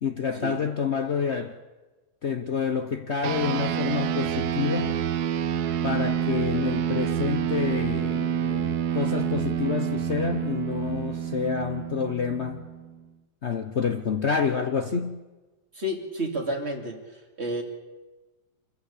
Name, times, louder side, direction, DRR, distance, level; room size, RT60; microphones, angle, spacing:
voice 1, 0.0-1.6 2.2-5.0 5.8-12.6 13.4-15.2, left 6 dB, 45° left, 1.1 m, -28 dB
sound 1, 3.2-13.0, right 9 dB, 65° right, 1.4 m, -28 dB
voice 2, 15.7-17.6, equal, 35° right, 2.8 m, -31 dB
26.0 x 14.5 x 8.5 m
omnidirectional pair, 1.9 m